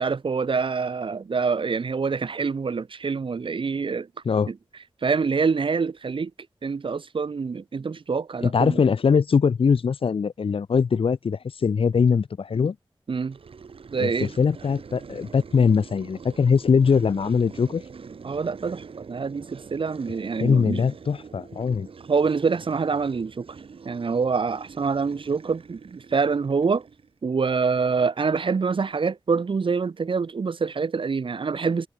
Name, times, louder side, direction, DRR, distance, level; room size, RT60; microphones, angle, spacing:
voice 1, 0.0-4.1 4.5-4.6 5.0-6.3 6.6-8.8 13.1-13.4 13.9-14.3 18.2-20.8 22.1-23.6 23.8-26.9 27.2-31.9, right 5 dB, 70° right, 1.0 m, -25 dB
voice 2, 8.4-12.7 14.0-17.8 20.4-21.9, left 6 dB, 90° left, 1.2 m, -22 dB
sound 1, 13.3-27.2, right 5 dB, 90° right, 3.2 m, -45 dB
cardioid pair, 55°, 9 cm